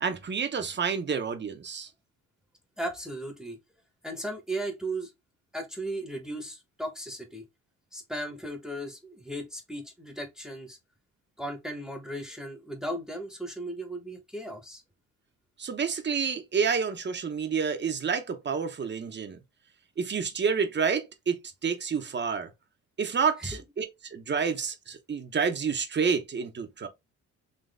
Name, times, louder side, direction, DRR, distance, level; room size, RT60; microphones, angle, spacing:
voice 1, 0.0-1.9 15.6-19.4 20.0-22.5 23.0-26.9, right 6 dB, 35° right, 1.0 m, -29 dB
voice 2, 2.8-3.6 4.0-5.1 5.5-7.4 7.9-10.8 11.4-14.8 23.4-23.6, right 1 dB, ahead, 1.1 m, -36 dB
4.0 x 3.0 x 3.4 m
cardioid pair, 90°, 30 cm